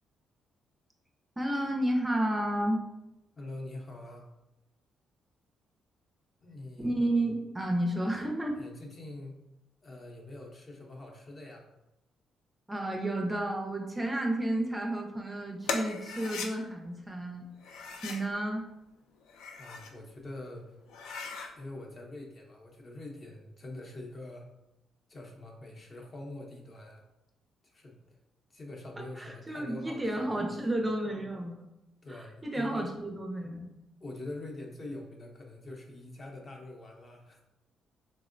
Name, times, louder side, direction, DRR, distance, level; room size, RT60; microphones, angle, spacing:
voice 1, 1.4-2.8 6.8-8.6 12.7-18.7 29.2-31.6 32.1-33.7, right 1 dB, 15° right, 1 dB, 0.4 m, -31 dB
voice 2, 3.4-4.3 6.4-6.9 8.6-9.4 9.8-11.7 19.6-20.6 21.6-24.5 25.1-27.0 27.6-27.9 28.5-30.4 32.0-32.9 34.0-37.4, left 2 dB, 40° left, 0 dB, 0.6 m, -44 dB
sound 1, 15.6-16.5 17.6-18.3 19.2-19.9 20.4-20.5 20.9-21.5, left 5 dB, 90° left, 0.3 m, -38 dB
3.5 x 2.0 x 2.5 m, 0.92 s
cardioid pair, 90°, 0 cm